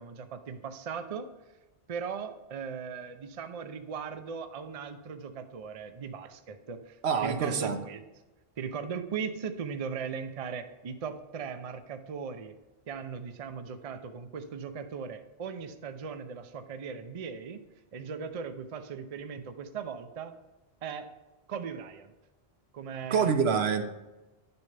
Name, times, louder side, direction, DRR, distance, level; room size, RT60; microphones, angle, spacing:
voice 1, 0.0-1.3 1.9-8.0 8.6-12.6 12.9-17.6 17.9-20.3 20.8-21.1 21.5-22.1 22.7-23.3, right 6 dB, 45° right, 9 dB, 0.5 m, -38 dB
voice 2, 7.0-7.8 23.1-23.9, right 6 dB, 75° right, 7 dB, 1.0 m, -26 dB
10.5 x 6.9 x 3.3 m, 1.1 s
omnidirectional pair, 1.1 m